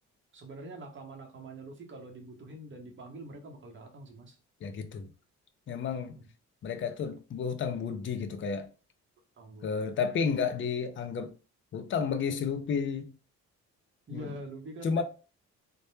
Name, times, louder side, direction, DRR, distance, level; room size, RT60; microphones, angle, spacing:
voice 1, 0.3-4.4 6.0-6.3 9.4-10.1 14.1-15.0, right 1 dB, 40° right, 0.8 m, -45 dB
voice 2, 4.6-5.1 5.7-6.2 6.6-8.7 9.6-11.3 11.7-13.1 14.1-14.3 14.8-15.0, left 6 dB, 40° left, 0.4 m, -31 dB
2.1 x 2.1 x 3.0 m
cardioid pair, 90°, 30 cm